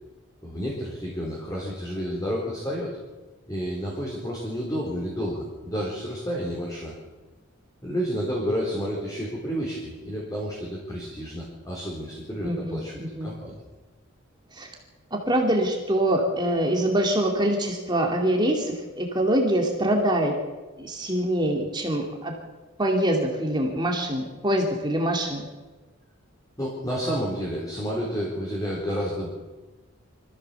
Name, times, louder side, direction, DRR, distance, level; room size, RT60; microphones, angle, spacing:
voice 1, 0.4-3.0 3.5-6.9 7.8-13.6 26.6-29.3, equal, 15° left, -3 dB, 4.2 m, -30 dB
voice 2, 12.4-13.3 14.5-14.7 15.1-20.3 20.8-22.3 22.8-25.5, right 1 dB, 20° right, 1 dB, 2.5 m, -24 dB
25.0 x 15.0 x 7.0 m, 1.2 s
head